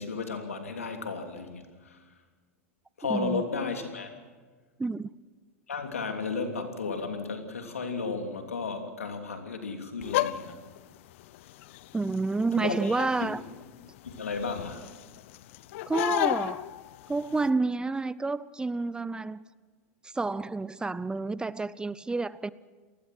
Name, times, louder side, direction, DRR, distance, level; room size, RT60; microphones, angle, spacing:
voice 1, 0.0-2.0 3.0-4.1 5.7-10.6 12.6-13.3 14.0-14.9, left 4 dB, 90° left, 3.0 m, -34 dB
voice 2, 3.1-3.4 4.8-5.1 11.9-13.4 15.9-16.7 17.1-19.4 20.0-22.5, right 3 dB, 10° right, 0.7 m, -29 dB
sound 1, 10.0-17.5, left 15 dB, 65° left, 0.8 m, -34 dB
28.5 x 19.5 x 6.2 m
hypercardioid pair, 95°, 7 cm